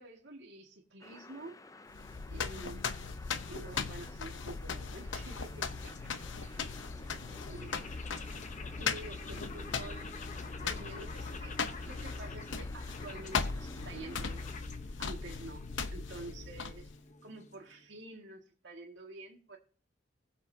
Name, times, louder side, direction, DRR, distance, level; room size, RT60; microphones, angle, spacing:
voice 1, 0.0-1.6 2.3-3.0 3.5-5.7 7.5-7.7 8.8-10.2 10.6-11.6 11.8-14.6 15.0-16.9 17.2-19.6, right 2 dB, 70° right, 2.0 m, -48 dB
sound 1, 1.0-14.6, left 3 dB, 20° left, 0.5 m, -54 dB
sound 2, 1.9-17.0, left 5 dB, 75° left, 0.9 m, -39 dB
sound 3, 4.9-18.0, left 3 dB, 40° left, 0.9 m, -49 dB
voice 2, 5.7-7.7 11.7-11.9, right 2 dB, 35° right, 2.3 m, -59 dB
20.0 x 7.4 x 2.8 m
head